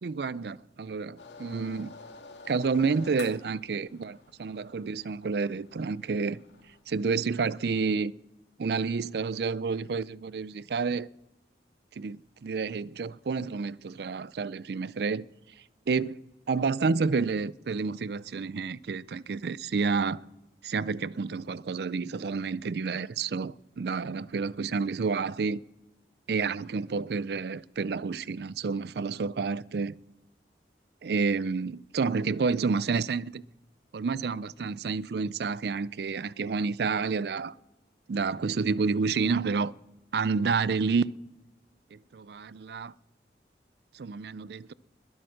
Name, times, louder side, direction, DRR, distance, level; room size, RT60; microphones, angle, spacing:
voice 1, 0.0-1.9 2.5-6.4 6.9-8.1 8.6-11.1 12.0-15.2 15.9-20.2 20.6-25.6 26.3-30.0 31.0-33.4 33.9-37.5 38.1-39.7 40.1-41.1 41.9-42.9 43.9-44.7, right 4 dB, 65° right, 0.4 m, -29 dB
sound 1, 1.2-6.8, left 4 dB, 90° left, 2.4 m, -49 dB
21.0 x 8.8 x 6.4 m
head